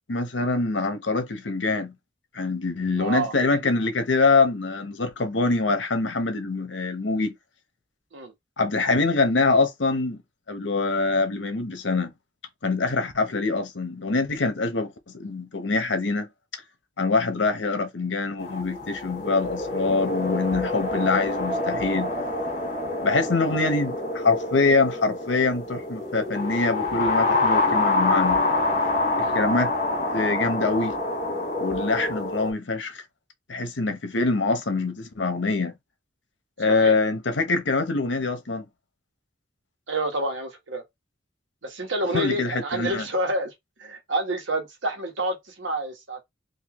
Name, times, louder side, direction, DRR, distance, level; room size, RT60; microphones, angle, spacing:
voice 1, 0.1-1.9 2.3-7.3 8.6-10.2 10.5-12.1 12.6-16.3 17.0-22.1 23.0-28.4 29.3-29.7 30.1-30.9 31.6-33.0 33.5-35.7 36.6-38.6 42.1-43.1, left 3 dB, 70° left, 0.9 m, -24 dB
voice 2, 3.0-3.3 8.1-8.3 29.2-29.4 36.7-36.9 39.9-40.8 41.6-43.5 43.8-46.2, right 1 dB, 80° right, 1.3 m, -28 dB
sound 1, 18.4-32.5, left 2 dB, 45° left, 1.8 m, -26 dB
3.8 x 2.7 x 3.0 m
head